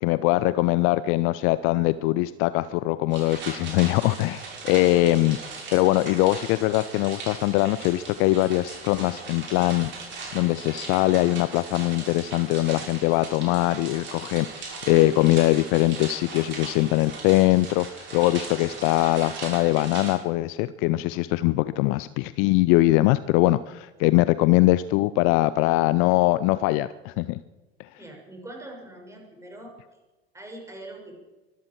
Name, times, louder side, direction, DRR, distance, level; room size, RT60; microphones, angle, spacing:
voice 1, 0.0-5.4 5.7-9.9 10.3-27.4 27.8-27.9, left 18 dB, 45° left, 17 dB, 0.5 m, -22 dB
sound 1, 3.1-20.2, right 4 dB, 35° right, 5.9 m, -39 dB
voice 2, 28.0-29.7 30.3-31.2, right 1 dB, 10° right, 1 dB, 5.7 m, -42 dB
23.5 x 13.0 x 4.6 m, 1.2 s
figure-of-eight pair, 75°, 31 cm